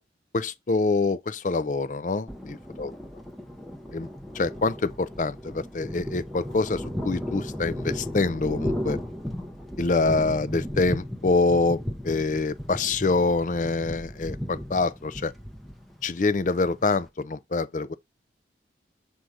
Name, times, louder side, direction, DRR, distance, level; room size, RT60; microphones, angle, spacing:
voice 1, 0.3-2.9 3.9-4.1 4.3-9.0 9.8-15.3 16.0-17.9, left 3 dB, 45° left, 0.4 m, -25 dB
Thunder, 2.3-17.1, equal, ahead, 0.7 m, -35 dB
7.7 x 2.7 x 4.7 m
head